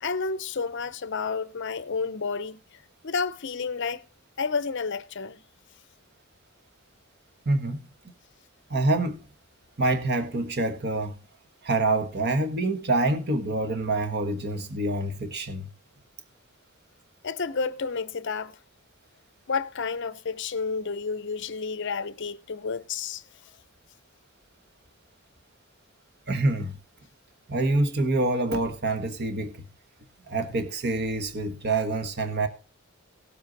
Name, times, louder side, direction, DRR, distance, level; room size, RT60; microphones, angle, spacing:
voice 1, 0.0-2.6 3.0-4.0 4.4-5.4 17.2-18.6 19.5-23.2, left 5 dB, 55° left, 0.7 m, -30 dB
voice 2, 7.4-7.8 8.7-9.2 9.8-11.2 11.6-15.7 26.3-26.7 27.5-29.6 30.3-32.5, right 2 dB, 50° right, 1.3 m, -26 dB
17.5 x 7.9 x 4.0 m
head